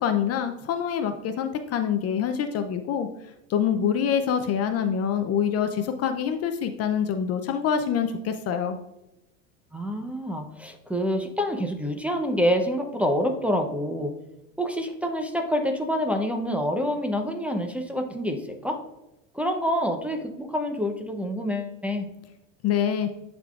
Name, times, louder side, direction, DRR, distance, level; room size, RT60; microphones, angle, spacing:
voice 1, 0.0-3.1 3.5-8.8 22.6-23.1, left 8 dB, 40° left, 7 dB, 0.5 m, -25 dB
voice 2, 9.7-14.1 14.6-18.8 19.3-22.1, equal, 5° right, 2 dB, 0.6 m, -27 dB
11.0 x 3.7 x 2.4 m, 0.93 s
supercardioid pair, 100°, 39 cm